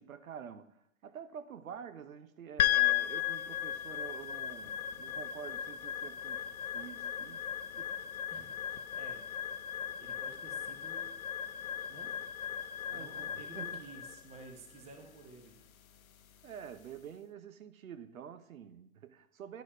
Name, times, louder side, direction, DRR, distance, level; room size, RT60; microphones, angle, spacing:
voice 1, 0.0-6.4 6.7-7.5 7.7-7.9 12.8-13.9 16.4-19.6, right 8 dB, 80° right, 0.8 m, -48 dB
sound 1, 2.6-17.0, left 11 dB, 85° left, 0.6 m, -36 dB
voice 2, 8.3-11.1 11.9-12.2 12.9-15.6, right 3 dB, 15° right, 0.9 m, -53 dB
10.5 x 4.1 x 5.0 m
hypercardioid pair, 130°, 41 cm